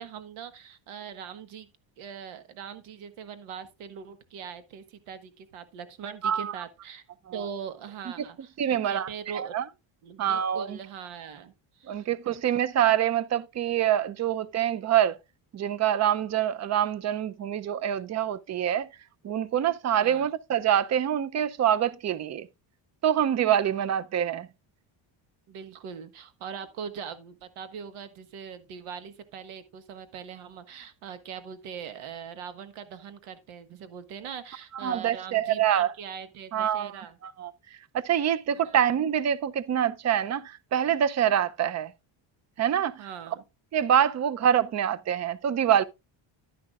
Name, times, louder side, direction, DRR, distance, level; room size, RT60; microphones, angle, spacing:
voice 1, 0.0-1.7 2.0-7.0 7.3-9.6 10.0-12.4 20.0-20.3 25.5-37.2 38.5-38.8 43.0-43.4, right 7 dB, 85° right, 1.5 m, -41 dB
voice 2, 8.6-9.1 9.3-9.6 10.2-10.8 11.9-15.2 15.5-18.9 19.2-22.5 23.0-24.5 34.7-35.9 36.5-36.9 37.2-37.5 38.0-41.9 42.6-43.0 43.7-45.9, right 10 dB, 35° right, 0.5 m, -25 dB
11.0 x 10.5 x 2.4 m
cardioid pair, 145°, 50 cm